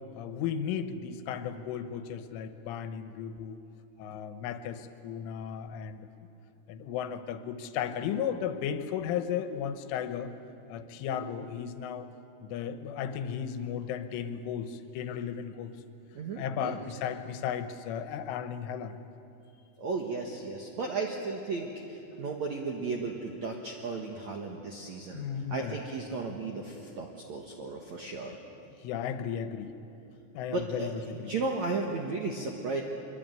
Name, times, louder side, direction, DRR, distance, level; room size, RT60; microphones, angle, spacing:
voice 1, 0.1-3.6 4.0-6.1 6.7-10.3 10.7-12.1 12.4-15.7 16.4-19.0 25.1-25.8 28.8-29.7 30.3-31.3, left 8 dB, 85° left, 9 dB, 3.6 m, -35 dB
voice 2, 16.1-16.8 19.8-25.2 25.5-28.4 30.5-32.8, right 3 dB, 70° right, 1 dB, 1.7 m, -35 dB
24.0 x 23.5 x 9.2 m, 2.9 s
omnidirectional pair, 5.5 m